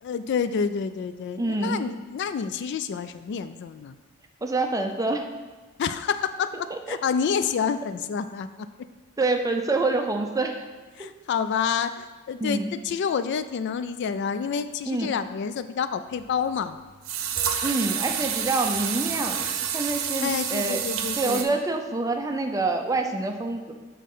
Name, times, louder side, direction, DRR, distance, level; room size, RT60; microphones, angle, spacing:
voice 1, 0.0-4.0 5.8-6.5 6.9-8.9 11.0-16.8 20.2-21.6, left 6 dB, 55° left, 12 dB, 0.3 m, -28 dB
voice 2, 1.4-1.8 4.4-5.3 6.7-7.0 9.2-10.6 12.4-12.7 14.9-15.1 17.6-20.8 21.2-23.7, right 2 dB, 15° right, 4 dB, 0.5 m, -26 dB
sound 1, 16.2-16.3 17.0-21.4, right 8 dB, 75° right, 0.7 m, -28 dB
7.4 x 4.2 x 5.5 m, 1.3 s
head